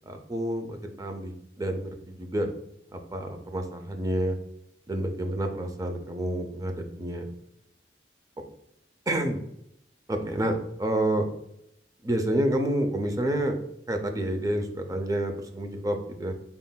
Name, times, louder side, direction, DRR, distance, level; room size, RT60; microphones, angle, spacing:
voice 1, 0.0-2.5 2.9-4.4 4.9-7.3 9.1-9.4 10.1-11.3 12.0-13.6 13.9-16.3, right 1 dB, 20° right, 5 dB, 0.4 m, -29 dB
4.1 x 3.7 x 2.2 m, 0.78 s
head